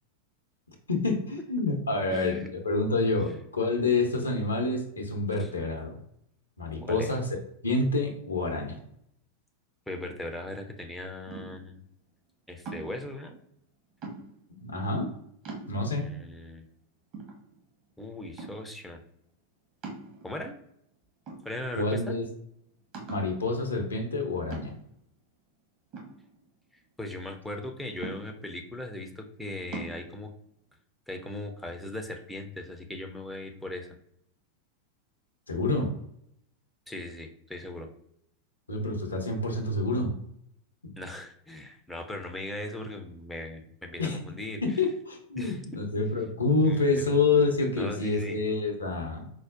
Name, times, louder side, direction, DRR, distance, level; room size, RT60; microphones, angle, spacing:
voice 1, 0.9-6.0 6.6-7.2 7.6-8.8 14.6-15.1 15.7-16.0 21.7-22.3 23.1-24.7 35.5-35.9 38.7-40.1 44.0-44.2 44.6-49.3, left 3 dB, 75° left, 3 dB, 0.6 m, -27 dB
voice 2, 2.1-2.5 3.2-3.4 5.4-5.5 6.8-7.2 9.9-11.8 12.5-13.4 15.9-16.6 18.0-19.0 20.2-20.6 21.4-22.1 26.7-30.3 31.1-33.9 36.9-37.9 41.0-44.8 45.4-45.6 46.6-47.1 47.8-48.4, left 1 dB, 5° left, 3 dB, 0.4 m, -39 dB
sound 1, 11.3-11.7 12.7-13.1 14.0-14.5 15.0-15.1 15.5-16.1 16.6-16.7 17.1-17.9 18.4-18.8 19.8-20.6 21.3-21.9 22.2-22.3 22.9-23.4 24.5-25.0 25.9-26.8 28.0-28.6 29.7-30.0, right 3 dB, 40° right, 0.9 m, -41 dB
4.5 x 2.1 x 2.4 m, 0.73 s
figure-of-eight pair, 90°, 0 cm